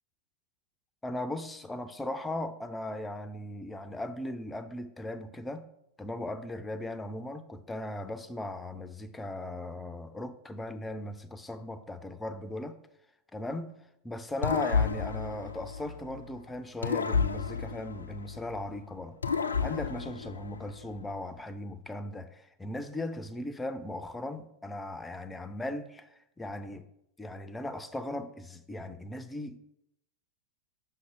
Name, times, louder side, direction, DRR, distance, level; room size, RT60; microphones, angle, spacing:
voice 1, 1.0-5.7 6.0-12.8 13.3-13.7 14.0-19.2 19.6-26.9 27.2-29.6, left 1 dB, 10° left, 0.5 m, -38 dB
sound 1, 14.4-16.3 16.8-18.7 19.2-20.9, left 5 dB, 75° left, 0.3 m, -31 dB
6.2 x 5.5 x 3.7 m
figure-of-eight pair, 90°, 0 cm